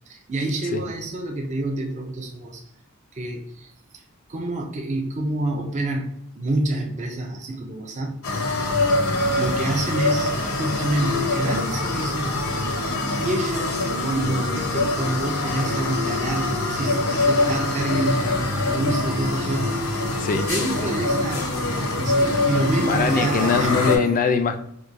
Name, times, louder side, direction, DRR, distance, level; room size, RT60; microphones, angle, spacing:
voice 1, 0.1-2.6 3.1-4.0 4.3-8.6 9.4-12.4 13.2-20.2 20.5-21.5 22.0-23.8, right 1 dB, 35° right, 1 dB, 0.5 m, -28 dB
sound 1, 8.2-24.0, left 2 dB, 75° left, 0.7 m, -24 dB
voice 2, 20.2-20.5 22.8-24.6, left 5 dB, 40° left, 7 dB, 0.3 m, -22 dB
4.5 x 2.2 x 2.5 m, 0.71 s
head